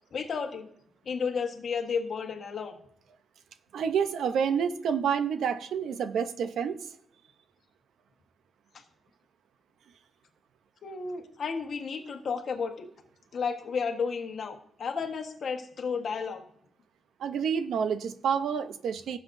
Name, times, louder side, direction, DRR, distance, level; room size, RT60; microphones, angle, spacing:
voice 1, 0.1-0.7 1.0-2.8 8.7-8.8 10.8-12.9 13.3-16.4, left 5 dB, 45° left, 4 dB, 1.3 m, -32 dB
voice 2, 3.7-6.8 17.2-19.2, right 7 dB, 75° right, 11 dB, 0.6 m, -28 dB
17.0 x 7.6 x 2.6 m, 0.67 s
wide cardioid pair, 180°, 0 cm